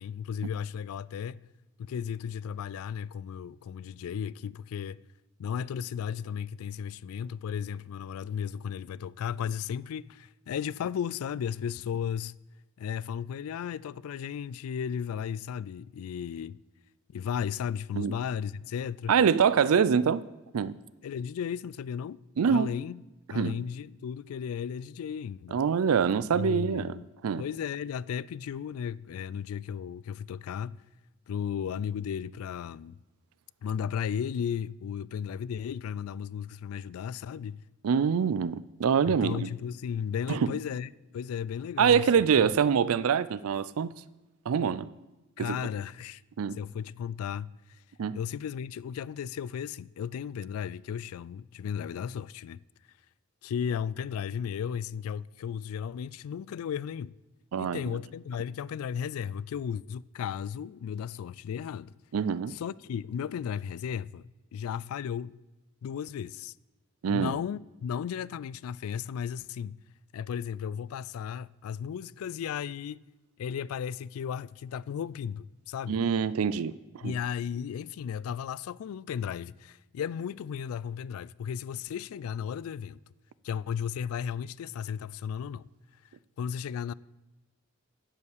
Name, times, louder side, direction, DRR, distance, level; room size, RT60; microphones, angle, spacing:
voice 1, 0.0-1.5 1.8-5.0 5.4-12.4 12.8-16.6 17.1-19.1 21.0-22.2 22.5-23.0 23.3-25.6 26.3-27.0 27.4-30.8 31.3-33.0 33.6-37.6 39.1-42.1 42.4-42.5 45.4-46.2 46.6-47.5 48.1-52.6 53.4-57.1 57.6-61.9 62.5-65.4 65.8-66.5 67.1-69.8 70.1-73.0 73.4-76.0 77.0-83.0 83.4-85.7 86.4-86.9, left 8 dB, 80° left, 0.3 m, -35 dB
voice 2, 19.1-20.2 20.5-20.8 22.4-22.7 23.3-23.6 25.5-27.0 27.2-27.4 37.8-39.5 40.3-40.5 41.8-44.0 44.5-44.9 45.4-45.6 46.4-46.6 48.0-48.2 57.5-57.8 62.1-62.6 67.0-67.3 75.9-76.8 77.0-77.2, right 7 dB, 80° right, 0.4 m, -25 dB
11.5 x 5.5 x 8.0 m
head